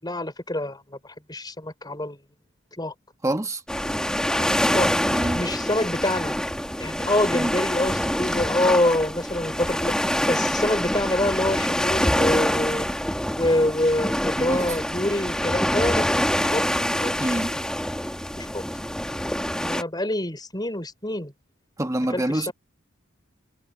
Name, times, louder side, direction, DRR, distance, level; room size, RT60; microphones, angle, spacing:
voice 1, 0.0-2.2 2.8-2.9 4.3-4.5 4.7-4.9 5.3-6.3 6.8-9.9 10.3-12.9 13.3-16.1 16.4-16.7 17.0-17.1 18.4-18.6 19.6-21.3 22.1-22.5, left 1 dB, 20° left, 4.6 m, -26 dB
voice 2, 3.2-3.6 5.1-5.4 7.3-7.5 14.4-14.6 17.2-17.5 21.8-22.5, right 1 dB, 15° right, 1.3 m, -26 dB
sound 1, 3.7-19.8, equal, 5° left, 1.7 m, -25 dB
head